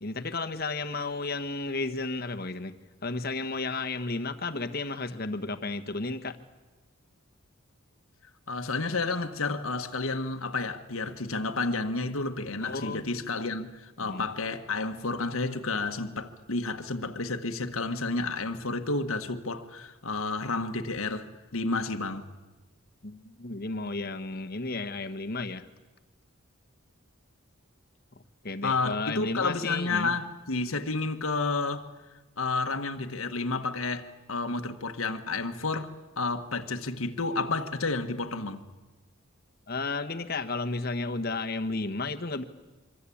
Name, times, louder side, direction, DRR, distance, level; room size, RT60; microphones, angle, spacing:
voice 1, 0.0-2.7 3.0-6.4 12.6-13.4 14.0-14.2 23.0-25.6 28.4-30.1 39.7-42.4, left 3 dB, 45° left, 1.4 m, -33 dB
voice 2, 8.5-22.2 28.6-31.9 32.4-38.6, left 3 dB, 80° left, 1.6 m, -31 dB
26.0 x 24.5 x 8.7 m
head